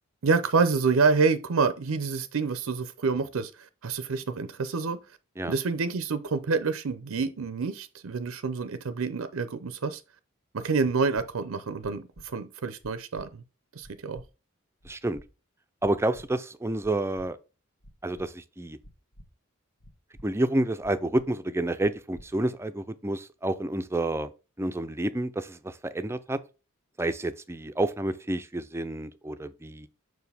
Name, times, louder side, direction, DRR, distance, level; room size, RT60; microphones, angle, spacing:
voice 1, 0.2-5.0 5.4-10.0 10.5-13.4 13.8-14.2, right 4 dB, 80° right, 0.6 m, -27 dB
sound 1, 11.8-12.3 12.8-13.3 13.8-14.3 14.8-15.3 15.8-16.3 16.8-17.3 17.8-18.3 18.8-19.3 19.8-20.3 20.8-21.3 21.8-22.3, equal, 90° left, 1.5 m, -50 dB
voice 2, 14.8-15.2 15.8-17.4 18.0-18.8 20.2-24.3 24.6-26.4 27.0-29.9, right 1 dB, 10° right, 0.5 m, -29 dB
6.1 x 4.8 x 3.4 m
head